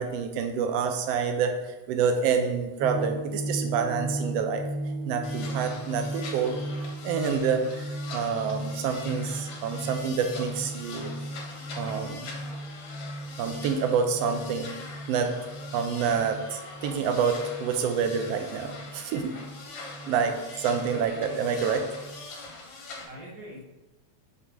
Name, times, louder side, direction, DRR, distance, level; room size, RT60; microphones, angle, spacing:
voice 1, 0.0-1.5 1.9-4.6 5.0-6.6 7.0-11.1 11.8-12.3 13.4-14.7 15.1-15.3 15.7-19.3 20.1-21.8, right 6 dB, 80° right, 6 dB, 1.5 m, -27 dB
sound 1, 2.8-22.2, right 1 dB, 80° left, 2.0 m, -37 dB
sound 2, 5.2-23.0, left 3 dB, 60° left, 1.3 m, -43 dB
voice 2, 20.9-21.4 22.8-23.6, right 1 dB, 55° right, -1 dB, 1.2 m, -43 dB
6.0 x 4.0 x 4.6 m, 1.1 s
omnidirectional pair, 3.4 m